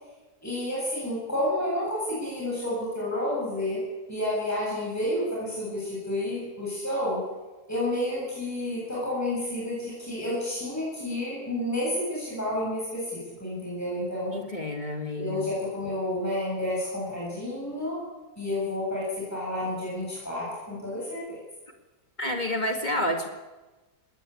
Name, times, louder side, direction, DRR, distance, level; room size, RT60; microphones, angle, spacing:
voice 1, 0.4-3.8 4.1-7.3 7.7-14.4 15.2-18.0 18.4-21.4, left 1 dB, 10° left, -6 dB, 7.9 m, -30 dB
voice 2, 14.3-15.5 22.2-23.3, left 1 dB, 25° left, 4 dB, 2.1 m, -29 dB
21.0 x 18.5 x 8.6 m, 1.2 s
omnidirectional pair, 1.8 m